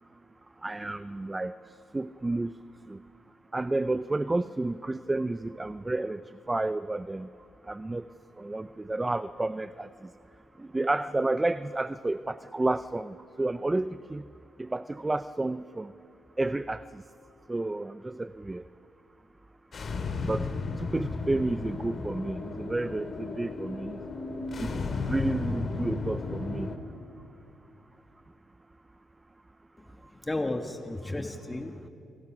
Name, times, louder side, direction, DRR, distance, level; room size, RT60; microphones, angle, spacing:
voice 1, 0.6-2.6 2.9-3.0 3.5-7.3 7.7-8.1 8.4-10.1 10.6-14.2 14.6-15.9 16.4-17.0 17.5-18.7 20.2-24.0 24.6-24.7 25.1-26.7, right 2 dB, 15° right, 14 dB, 0.5 m, -31 dB
sound 1, 19.7-26.8, left 3 dB, 45° left, 2.3 m, -34 dB
voice 2, 29.9-31.9, left 2 dB, 15° left, 5 dB, 1.4 m, -34 dB
27.5 x 25.0 x 6.0 m, 2.8 s
cardioid pair, 90°, 0 cm